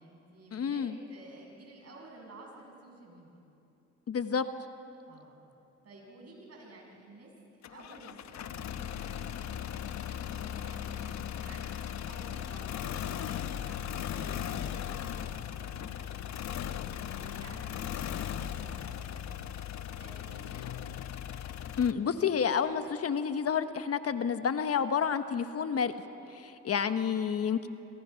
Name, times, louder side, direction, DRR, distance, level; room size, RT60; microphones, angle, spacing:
voice 1, 0.0-3.4 5.1-5.5 5.8-7.3 7.7-16.7 17.1-19.4 20.0-21.1, right 2 dB, 55° right, 0 dB, 7.4 m, -53 dB
voice 2, 0.5-1.0 4.1-4.5 21.8-25.9 26.3-27.7, left 7 dB, 55° left, 10 dB, 1.2 m, -29 dB
sound 1, 7.6-21.9, left 9 dB, 70° left, 1.0 m, -38 dB
27.5 x 25.5 x 5.8 m, 2.8 s
supercardioid pair, 65°, 29 cm